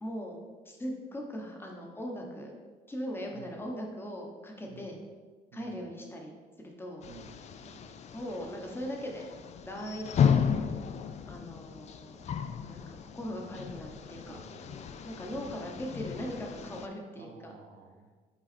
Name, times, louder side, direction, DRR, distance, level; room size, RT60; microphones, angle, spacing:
voice 1, 0.0-2.5 2.9-5.0 5.5-7.1 8.1-9.3 9.6-10.4 11.3-12.2 12.7-14.4 15.0-17.5, equal, 15° left, 1 dB, 1.1 m, -40 dB
sound 1, 7.0-16.9, left 7 dB, 40° left, 0.4 m, -34 dB
voice 2, 7.6-7.9 14.2-15.0 15.4-15.9 17.1-18.1, right 5 dB, 90° right, 2 dB, 1.1 m, -53 dB
5.5 x 4.0 x 4.3 m, 1.4 s
cardioid pair, 110°, 17 cm